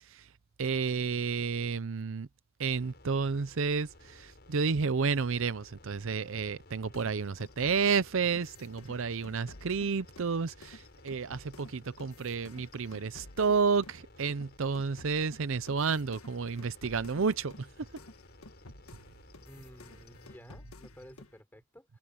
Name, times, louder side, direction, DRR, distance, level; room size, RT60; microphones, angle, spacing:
voice 1, 0.6-2.3 2.6-17.9, right 5 dB, 65° right, 0.6 m, -31 dB
sound 1, 2.7-20.4, left 1 dB, 50° left, 5.7 m, -56 dB
sound 2, 6.9-14.0 14.3-21.4, left 2 dB, 90° left, 1.6 m, -53 dB
voice 2, 19.4-22.0, equal, 10° left, 6.2 m, -53 dB
head